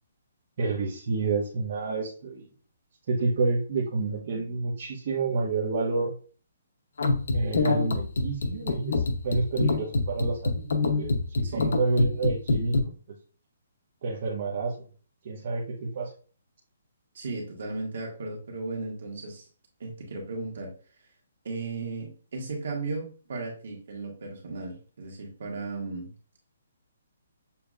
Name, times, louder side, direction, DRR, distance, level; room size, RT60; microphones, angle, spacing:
voice 1, 0.6-2.4 3.1-6.1 7.3-10.7 11.0-12.8 14.0-14.7 15.2-16.1, right 3 dB, 40° right, -4 dB, 0.9 m, -29 dB
sound 1, 7.0-12.8, left 3 dB, 70° left, 0.7 m, -26 dB
voice 2, 11.4-11.8 17.1-19.5 19.8-20.7 21.4-26.1, right 3 dB, 55° right, 0 dB, 1.6 m, -35 dB
6.9 x 2.8 x 2.5 m, 0.40 s
hypercardioid pair, 175°, 0 cm